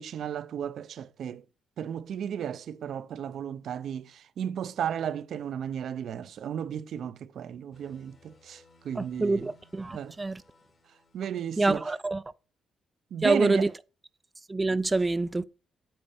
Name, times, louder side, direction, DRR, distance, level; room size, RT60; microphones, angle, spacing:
voice 1, 0.0-1.4 1.8-9.5 9.9-10.1 11.1-11.8 13.1-13.7, right 9 dB, 65° right, 0.6 m, -34 dB
sound 1, 7.7-12.2, left 3 dB, 45° left, 2.1 m, -62 dB
voice 2, 9.0-10.4 11.6-12.2 13.2-13.7 14.5-15.4, right 2 dB, 20° right, 0.4 m, -26 dB
8.8 x 4.3 x 7.0 m
cardioid pair, 90°, 0 cm